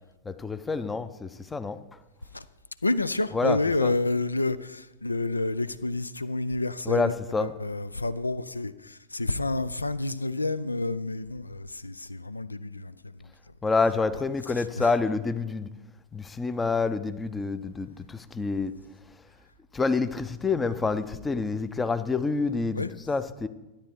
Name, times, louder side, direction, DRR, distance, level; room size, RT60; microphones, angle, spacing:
voice 1, 0.2-1.8 3.3-3.9 6.8-7.5 13.6-15.7 16.1-18.7 19.7-23.5, left 4 dB, 15° left, 0.7 m, -28 dB
voice 2, 2.8-7.1 7.4-13.5 14.6-14.9 22.7-22.9, left 2 dB, 80° left, 0.4 m, -29 dB
13.0 x 10.0 x 4.6 m
figure-of-eight pair, 90°, 0 cm